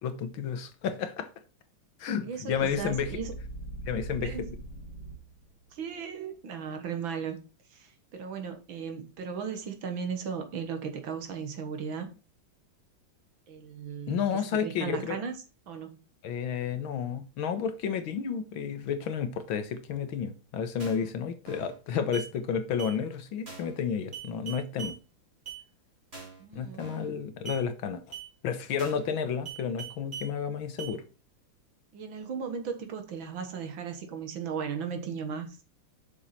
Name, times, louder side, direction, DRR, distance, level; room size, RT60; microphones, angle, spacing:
voice 1, 0.0-1.3 2.0-3.1 3.9-4.3 14.1-15.2 16.2-25.0 26.5-28.0 28.4-31.0, left 7 dB, 75° left, 1.8 m, -31 dB
voice 2, 2.2-3.4 4.2-4.5 5.7-7.4 7.7-12.1 13.5-15.3 15.7-16.0 26.4-27.1 31.9-35.6, right 6 dB, 70° right, 2.2 m, -36 dB
sound 1, 2.5-5.5, right 1 dB, 50° left, 1.8 m, -41 dB
sound 2, 20.8-21.1 21.5-21.8 22.1-22.3 22.8-23.0 23.5-23.8 24.1-25.0 25.5-25.6 26.1-26.4 26.8-27.1 27.4-27.6 28.1-28.3 28.8-29.1 29.4-30.3 30.8-30.9, right 7 dB, 30° right, 2.9 m, -41 dB
7.1 x 6.4 x 4.2 m
omnidirectional pair, 2.3 m